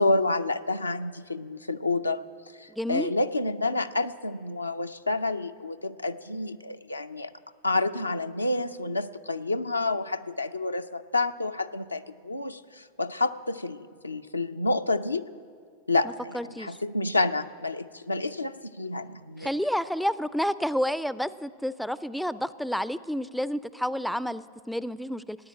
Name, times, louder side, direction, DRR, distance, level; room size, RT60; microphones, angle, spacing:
voice 1, 0.0-2.3 2.6-7.3 7.6-15.3 15.9-19.5, left 2 dB, 85° left, 8 dB, 0.5 m, -29 dB
voice 2, 2.8-3.1 16.3-16.8 19.4-25.4, equal, ahead, 16 dB, 0.4 m, -30 dB
16.0 x 9.7 x 8.5 m, 2.1 s
figure-of-eight pair, 90°, 0 cm